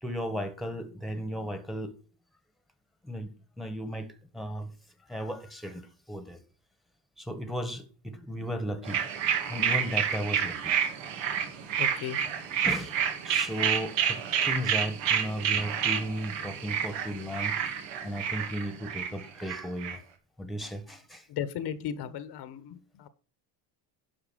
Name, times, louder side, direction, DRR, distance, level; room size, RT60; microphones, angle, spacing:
voice 1, 0.0-2.0 3.0-3.3 3.6-4.7 5.1-6.4 7.2-9.0 9.5-10.7 12.6-13.0 13.2-17.6 18.0-20.0 20.4-21.3, equal, ahead, 1.5 m, -35 dB
sound 1, 8.8-20.0, right 8 dB, 80° right, 2.6 m, -29 dB
voice 2, 11.8-12.2 21.3-23.1, left 9 dB, 60° left, 1.3 m, -36 dB
11.5 x 4.9 x 6.4 m
cardioid pair, 120°, 45 cm